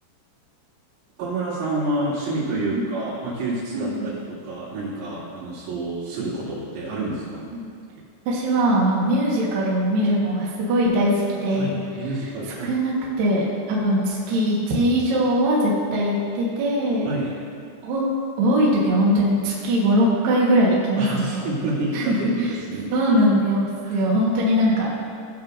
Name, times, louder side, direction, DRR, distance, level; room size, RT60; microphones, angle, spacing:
voice 1, 1.2-7.5 11.5-12.7 17.1-17.5 21.0-22.9 23.8-24.0, right 2 dB, 80° right, -8 dB, 5.2 m, -28 dB
voice 2, 3.7-4.1 7.5-7.7 8.3-11.7 12.6-17.1 17.8-18.0 18.4-21.4 21.9-22.2 22.9-24.9, equal, 60° right, -5 dB, 2.6 m, -21 dB
18.0 x 6.8 x 2.7 m, 2.4 s
omnidirectional pair, 5.6 m